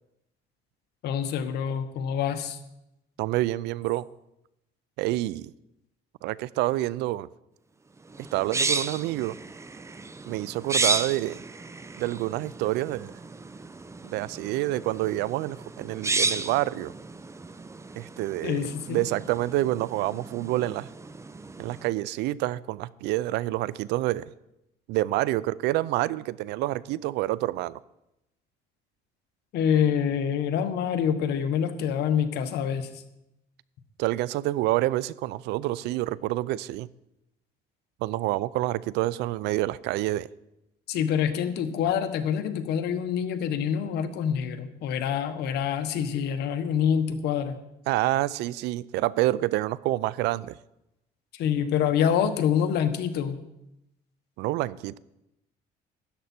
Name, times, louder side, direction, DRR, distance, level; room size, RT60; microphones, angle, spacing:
voice 1, 1.0-2.6 18.4-19.1 29.5-32.9 40.9-47.6 51.3-53.4, left 8 dB, 80° left, 9 dB, 1.2 m, -26 dB
voice 2, 3.2-4.1 5.0-5.5 6.2-7.3 8.3-9.4 10.3-11.4 12.0-13.1 14.0-16.9 18.0-20.9 21.6-24.3 24.9-27.8 34.0-36.9 38.0-40.3 47.9-50.6 54.4-55.0, right 16 dB, 90° right, 20 dB, 0.4 m, -28 dB
sound 1, 8.1-21.9, right 3 dB, 15° right, 0.6 m, -33 dB
13.0 x 10.5 x 4.4 m, 0.86 s
cardioid pair, 110°, 17 cm